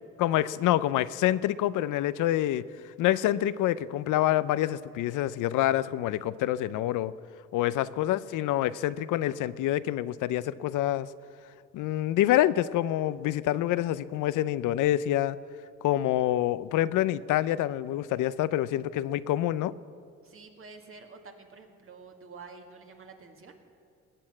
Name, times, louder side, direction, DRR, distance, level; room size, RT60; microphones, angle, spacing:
voice 1, 0.2-2.6 3.0-7.1 7.5-11.1 11.7-15.4 15.8-19.7, left 13 dB, 85° left, 17 dB, 0.6 m, -27 dB
voice 2, 7.5-7.9 20.2-23.6, right 4 dB, 45° right, 4 dB, 2.0 m, -49 dB
20.0 x 8.6 x 7.7 m, 2.4 s
cardioid pair, 90°, 30 cm